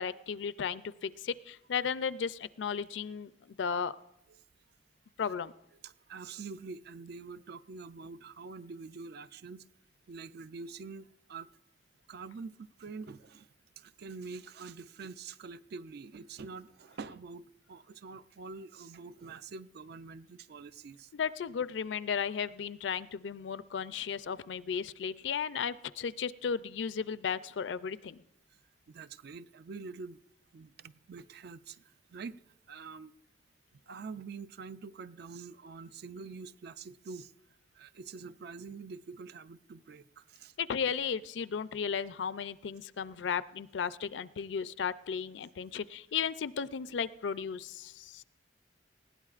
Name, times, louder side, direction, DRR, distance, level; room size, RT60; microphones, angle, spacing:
voice 1, 0.0-3.3 3.6-3.9 5.2-5.5 21.1-28.2 40.6-48.2, left 7 dB, 75° left, 16 dB, 0.4 m, -35 dB
voice 2, 5.8-9.6 10.1-11.5 12.1-13.5 13.8-21.1 28.9-30.2 30.5-33.1 33.9-37.3 37.7-40.5, right 4 dB, 60° right, 14 dB, 0.4 m, -46 dB
20.0 x 16.5 x 2.4 m, 0.85 s
head